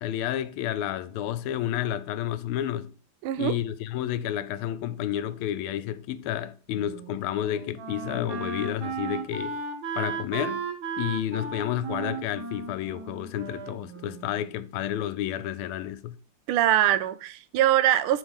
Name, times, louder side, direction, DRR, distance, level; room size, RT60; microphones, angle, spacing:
voice 1, 0.0-2.9 3.4-9.6 10.0-10.6 11.0-16.2, left 11 dB, 85° left, 1.5 m, -30 dB
voice 2, 3.2-3.5 16.5-18.2, right 12 dB, 90° right, 1.5 m, -22 dB
Wind instrument woodwind instrument, 6.7-14.5, right 5 dB, 70° right, 1.7 m, -35 dB
7.1 x 3.8 x 5.2 m
omnidirectional pair, 2.4 m